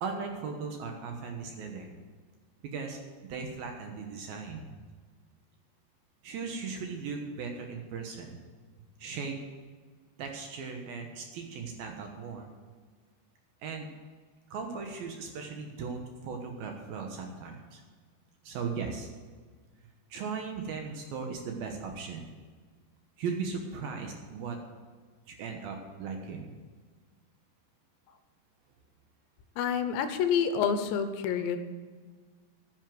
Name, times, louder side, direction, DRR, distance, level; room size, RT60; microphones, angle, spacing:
voice 1, 0.0-2.0 2.7-4.7 6.2-8.4 9.0-9.4 10.2-12.5 13.6-13.9 14.5-17.8 18.4-19.1 20.1-22.2 23.2-24.6 25.3-26.5, right 5 dB, 70° right, 3 dB, 2.6 m, -37 dB
voice 2, 29.6-31.6, left 7 dB, 80° left, 9 dB, 3.1 m, -28 dB
10.5 x 9.9 x 7.8 m, 1.5 s
omnidirectional pair, 5.2 m